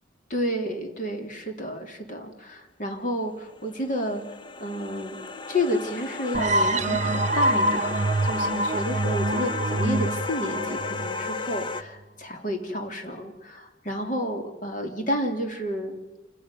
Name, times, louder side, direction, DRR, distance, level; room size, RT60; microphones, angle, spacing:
voice 1, 0.3-4.2 4.6-5.2 5.5-16.0, equal, 40° left, 3 dB, 3.5 m, -31 dB
sound 1, 3.4-11.8, left 3 dB, 25° left, 0.8 m, -34 dB
sound 2, 6.3-11.8, right 1 dB, 35° right, 0.7 m, -25 dB
27.5 x 16.0 x 9.3 m, 1.1 s
head